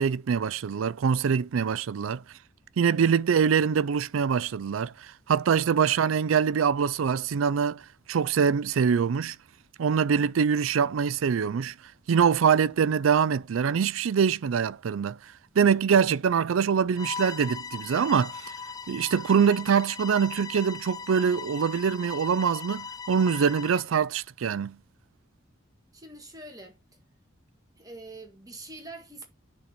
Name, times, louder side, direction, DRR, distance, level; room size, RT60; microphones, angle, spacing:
voice 1, 0.0-2.2 2.8-7.8 8.1-9.4 9.8-11.7 12.1-15.2 15.6-18.5 18.9-24.8, right 7 dB, 85° right, 0.4 m, -24 dB
Bowed string instrument, 17.0-23.9, left 5 dB, 20° left, 0.4 m, -39 dB
voice 2, 25.9-26.8 27.8-29.2, right 2 dB, 20° right, 1.7 m, -44 dB
10.5 x 4.2 x 4.4 m
head